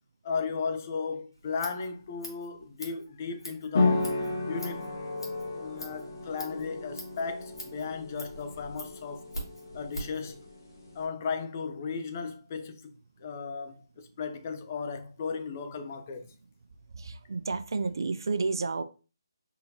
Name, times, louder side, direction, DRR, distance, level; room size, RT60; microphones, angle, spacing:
voice 1, 0.2-4.1 4.3-4.9 5.5-9.2 9.7-10.4 10.9-12.8 13.2-16.3, left 5 dB, 35° left, 0.6 m, -35 dB
Scissors, 1.3-10.2, equal, 85° left, 2.0 m, -44 dB
sound 1, 3.7-11.0, left 3 dB, 50° left, 1.5 m, -33 dB
voice 2, 16.9-18.8, right 4 dB, 65° right, 0.4 m, -31 dB
4.0 x 3.9 x 2.8 m
figure-of-eight pair, 155°, 2 cm